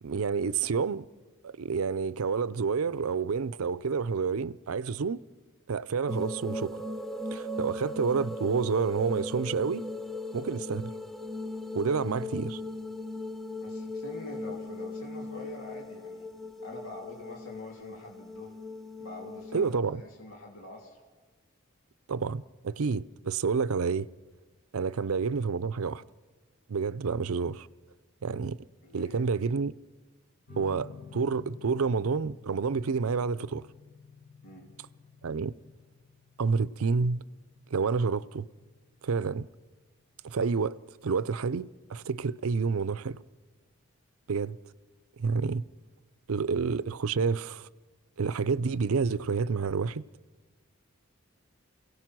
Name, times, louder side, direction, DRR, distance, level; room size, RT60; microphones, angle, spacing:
voice 1, 0.0-1.1 1.4-5.2 5.7-6.8 7.3-9.9 10.3-10.9 11.7-12.6 19.5-20.0 22.1-24.1 24.7-26.0 26.7-27.7 28.2-28.6 28.9-29.7 30.6-33.7 35.2-35.5 36.4-37.2 37.7-38.5 39.0-39.5 40.2-40.8 41.0-43.2 44.3-44.6 45.2-45.6 46.3-47.7 48.2-50.0, right 5 dB, 85° right, 0.5 m, -29 dB
sound 1, 6.1-19.8, left 1 dB, ahead, 0.7 m, -38 dB
voice 2, 13.6-16.3 16.6-18.5 19.0-21.0 28.8-29.2 34.4-34.7, left 1 dB, 75° left, 3.0 m, -45 dB
sound 2, 30.5-41.5, left 5 dB, 50° left, 7.1 m, -53 dB
28.0 x 17.5 x 6.1 m
head